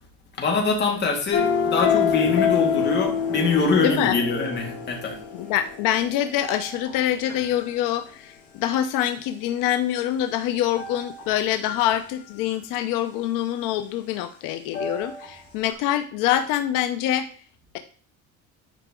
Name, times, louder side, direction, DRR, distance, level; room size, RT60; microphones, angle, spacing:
voice 1, 0.4-5.2, left 4 dB, 35° left, 1 dB, 2.2 m, -24 dB
sound 1, 1.3-7.6 10.8-11.3 11.7-11.9 14.7-15.3 15.7-15.8, left 7 dB, 50° left, 3.4 m, -27 dB
voice 2, 3.8-4.2 5.3-17.3, left 11 dB, 85° left, 9 dB, 0.7 m, -25 dB
10.5 x 4.8 x 3.7 m, 0.43 s
cardioid pair, 170°, 31 cm